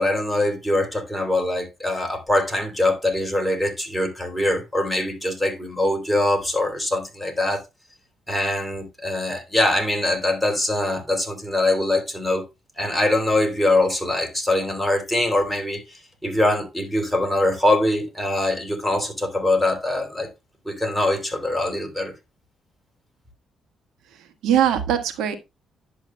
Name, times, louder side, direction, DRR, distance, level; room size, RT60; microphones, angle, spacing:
voice 1, 0.0-7.6 8.3-12.4 12.8-20.3 20.6-22.1, left 1 dB, ahead, 3.2 m, -23 dB
voice 2, 24.1-25.4, right 10 dB, 85° right, 1.6 m, -22 dB
11.0 x 7.9 x 2.2 m
cardioid pair, 90°, 0 cm